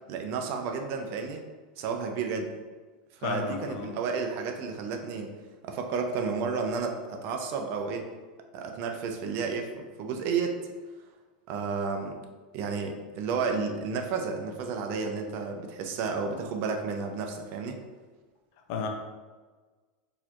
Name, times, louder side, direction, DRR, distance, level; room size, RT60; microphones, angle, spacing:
voice 1, 0.1-1.4 1.8-2.5 3.2-5.3 5.7-8.1 8.5-10.6 11.5-12.2 12.5-17.8, right 5 dB, 50° right, 4 dB, 0.5 m, -32 dB
voice 2, 3.2-4.0 18.7-18.9, left 5 dB, 55° left, 3 dB, 0.6 m, -32 dB
4.1 x 2.8 x 2.5 m, 1.4 s
hypercardioid pair, 115°, 5 cm